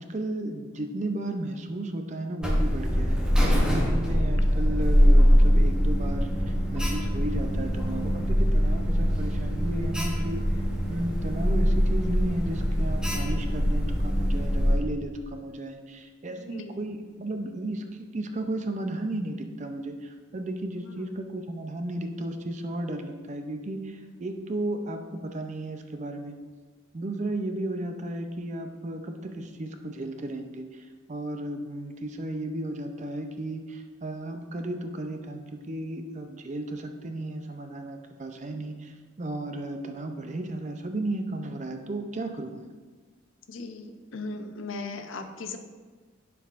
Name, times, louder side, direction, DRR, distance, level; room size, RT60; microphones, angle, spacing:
voice 1, 0.0-3.2 3.7-26.4 26.9-42.7, right 1 dB, 35° right, 6 dB, 0.5 m, -34 dB
Alarm, 2.4-14.8, equal, 5° right, 0.8 m, -23 dB
voice 2, 16.3-16.8 20.8-21.1 43.5-45.6, left 3 dB, 80° left, 7 dB, 0.6 m, -38 dB
10.0 x 4.7 x 2.5 m, 1.4 s
head